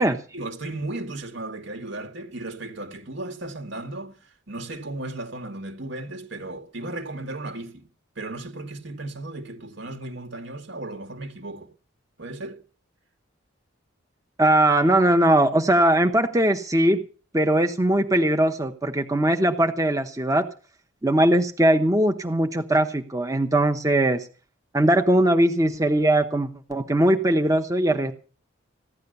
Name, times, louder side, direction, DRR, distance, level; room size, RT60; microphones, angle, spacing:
voice 1, 0.0-7.9 8.2-11.7 12.2-12.6, right 2 dB, 60° right, 2.2 m, -35 dB
voice 2, 14.4-17.0 17.3-20.5 21.0-24.3 24.7-28.1, right 1 dB, 15° right, 0.9 m, -20 dB
16.0 x 11.0 x 6.8 m
head